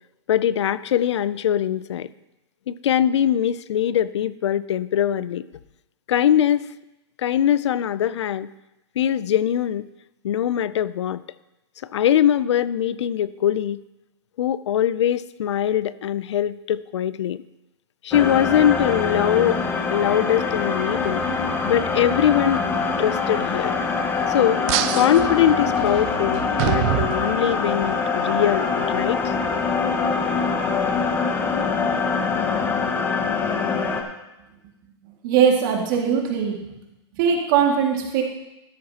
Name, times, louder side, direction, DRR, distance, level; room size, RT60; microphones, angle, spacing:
voice 1, 0.3-2.1 2.7-5.4 6.1-6.6 7.2-8.5 9.0-9.9 10.2-11.2 11.8-13.8 14.4-17.4 18.0-19.6 19.9-21.2 21.6-22.7 23.0-23.7 24.3-24.6 24.9-29.3, left 10 dB, 85° left, 17 dB, 0.4 m, -22 dB
sound 1, 18.1-34.0, left 4 dB, 15° left, 0.8 m, -24 dB
sound 2, 24.7-27.9, right 15 dB, 30° right, 0.4 m, -27 dB
voice 2, 35.2-36.6 37.2-38.2, right 7 dB, 45° right, 1 dB, 2.1 m, -20 dB
12.5 x 9.7 x 2.9 m, 0.95 s
hypercardioid pair, 155°, 14 cm